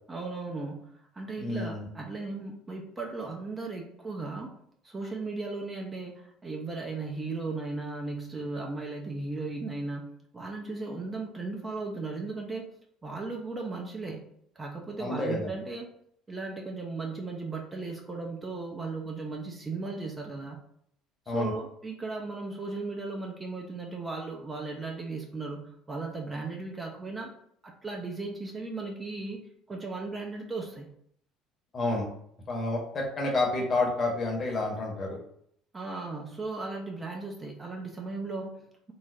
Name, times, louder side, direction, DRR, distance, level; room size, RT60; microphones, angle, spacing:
voice 1, 0.1-12.7 13.0-14.2 14.6-15.9 16.3-20.6 21.3-27.3 27.6-30.9 35.7-38.9, right 3 dB, 20° right, 0 dB, 0.5 m, -36 dB
voice 2, 1.4-1.9 15.0-15.5 21.3-21.5 31.7-32.1 32.5-35.2, left 2 dB, 40° left, -2 dB, 0.9 m, -29 dB
3.1 x 2.1 x 2.5 m, 0.69 s
figure-of-eight pair, 60°, 0 cm